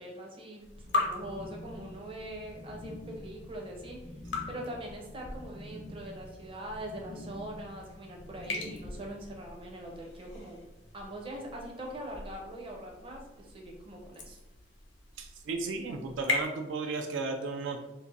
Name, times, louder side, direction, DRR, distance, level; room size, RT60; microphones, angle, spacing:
voice 1, 0.0-4.1 4.5-10.6 10.9-14.4, right 1 dB, 30° right, 0 dB, 0.6 m, -42 dB
sound 1, 0.6-16.4, left 3 dB, 70° left, 0.7 m, -40 dB
sound 2, 0.8-9.3, left 1 dB, 35° left, 0.4 m, -48 dB
voice 2, 15.2-17.8, right 3 dB, 75° right, 5 dB, 0.3 m, -34 dB
2.6 x 2.5 x 3.8 m, 1.0 s
head